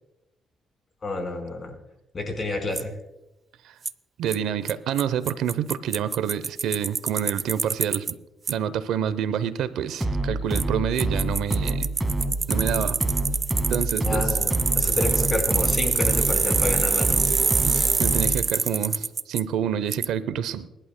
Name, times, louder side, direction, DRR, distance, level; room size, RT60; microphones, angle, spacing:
voice 1, 1.0-1.7 2.1-3.0 14.0-17.2, left 2 dB, 35° left, 4 dB, 4.3 m, -29 dB
Bicycle, 2.8-2.9 3.9-4.0 4.3-4.4 4.7-4.8 5.0-5.1 5.3-8.1 8.5-8.6 10.5-10.6 11.0-19.4 19.9-20.1, right 4 dB, 35° right, 0.4 m, -25 dB
voice 2, 4.2-8.1 8.5-11.9 12.5-13.0 13.7-14.3 17.6-20.7, right 9 dB, 80° right, 14 dB, 0.7 m, -28 dB
sound 1, 10.0-18.5, right 2 dB, 5° right, 1.9 m, -27 dB
28.5 x 11.5 x 2.2 m, 0.94 s
cardioid pair, 90°, 0 cm